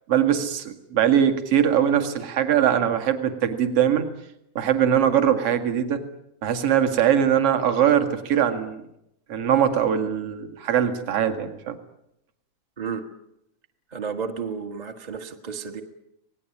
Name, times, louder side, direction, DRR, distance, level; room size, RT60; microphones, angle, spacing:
voice 1, 0.1-4.1 4.6-6.0 6.4-8.8 9.3-11.8, right 9 dB, 50° right, 6 dB, 2.9 m, -21 dB
voice 2, 12.8-13.1 13.9-15.8, right 6 dB, 20° right, 3 dB, 1.1 m, -32 dB
26.5 x 19.5 x 8.6 m, 0.79 s
omnidirectional pair, 3.5 m